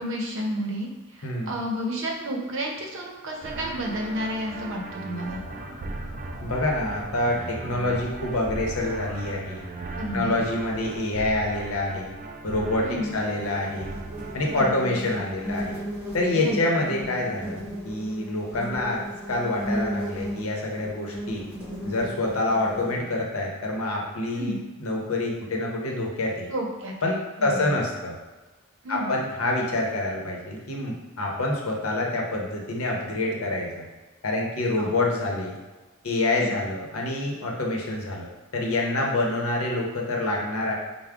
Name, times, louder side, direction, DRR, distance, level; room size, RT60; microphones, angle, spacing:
voice 1, 0.0-5.4 10.0-10.3 12.8-13.1 14.5-14.9 16.4-16.6 24.4-24.6 26.5-27.7 28.8-29.2 34.8-34.9 36.3-36.5, equal, 65° right, 0 dB, 0.7 m, -31 dB
sound 1, 3.4-14.8, right 3 dB, 40° right, 0.3 m, -38 dB
sound 2, 5.2-11.0, equal, 25° left, 0.9 m, -42 dB
voice 2, 6.4-9.7 10.1-12.1 12.4-13.9 14.3-15.8 16.1-19.0 19.3-21.4 21.8-26.5 27.0-28.2 28.9-33.8 34.2-35.6 36.0-40.7, left 2 dB, 75° left, -1 dB, 0.8 m, -27 dB
sound 3, 13.1-23.0, equal, 5° right, 1.2 m, -35 dB
4.7 x 2.1 x 3.5 m, 1.2 s
head